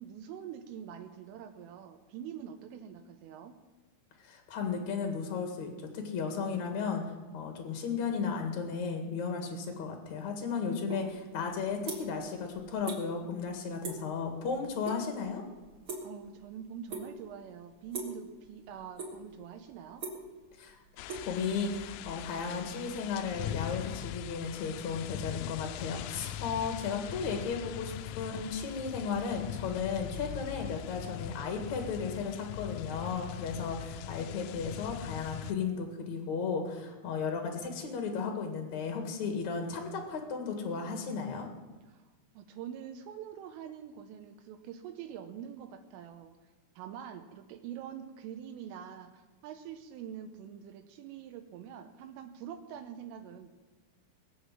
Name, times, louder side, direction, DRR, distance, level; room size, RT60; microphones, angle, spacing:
voice 1, 0.0-3.6 16.0-20.1 41.9-42.0 42.3-46.3 46.8-53.5, right 9 dB, 80° right, 7 dB, 3.4 m, -45 dB
voice 2, 4.2-7.0 7.3-15.4 20.6-20.8 21.3-41.5, left 5 dB, 60° left, 4 dB, 2.0 m, -35 dB
sound 1, 10.9-11.1 11.4-12.3 12.6-13.0 13.3-13.5 13.8-14.1 14.5-15.0 15.2-16.4 16.9-17.3 17.9-18.2 18.7-19.4 19.7-21.9, right 3 dB, 30° right, 3.6 m, -40 dB
sound 2, 21.0-35.5, left 12 dB, 90° left, 3.4 m, -41 dB
21.0 x 8.3 x 7.4 m, 1.3 s
omnidirectional pair, 6.0 m